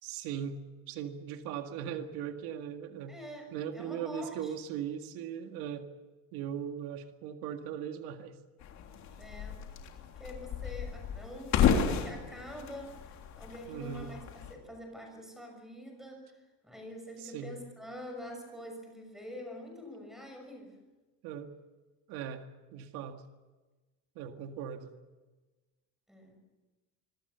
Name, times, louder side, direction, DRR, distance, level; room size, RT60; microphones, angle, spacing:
voice 1, 0.0-3.2 3.5-5.9 6.3-8.4 13.7-14.1 17.2-17.6 21.2-21.5 22.1-22.4 22.7-23.2 24.2-24.9, right 8 dB, 80° right, 6 dB, 2.0 m, -39 dB
voice 2, 3.1-4.5 9.2-9.6 10.1-14.2 14.5-20.8 26.1-26.4, left 1 dB, ahead, 3 dB, 6.1 m, -46 dB
Body Hitting Wooden Door, 8.6-14.5, left 7 dB, 50° left, 3.5 m, -33 dB
26.0 x 22.5 x 6.9 m, 1.2 s
cardioid pair, 180°, 36 cm